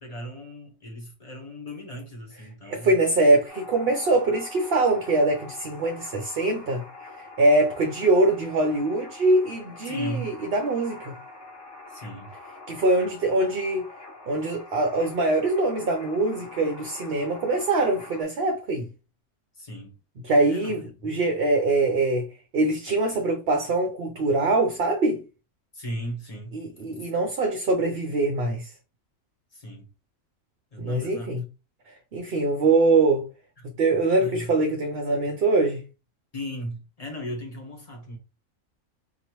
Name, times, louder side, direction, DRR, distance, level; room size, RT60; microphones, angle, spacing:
voice 1, 0.0-2.9 9.8-10.3 11.9-12.3 19.6-19.9 20.5-20.7 21.0-21.1 25.7-26.6 29.5-29.8 30.7-31.3 33.6-33.7 34.2-34.4 36.3-38.2, equal, 30° left, 1.3 m, -37 dB
voice 2, 2.6-6.8 7.2-11.1 12.7-13.9 14.3-18.9 20.2-22.3 22.5-25.2 26.5-28.7 30.8-31.4 32.1-33.3 33.8-35.8, right 2 dB, 55° right, 0.8 m, -23 dB
sound 1, 3.5-18.2, left 3 dB, 85° left, 2.3 m, -44 dB
4.6 x 2.9 x 3.0 m
omnidirectional pair, 1.4 m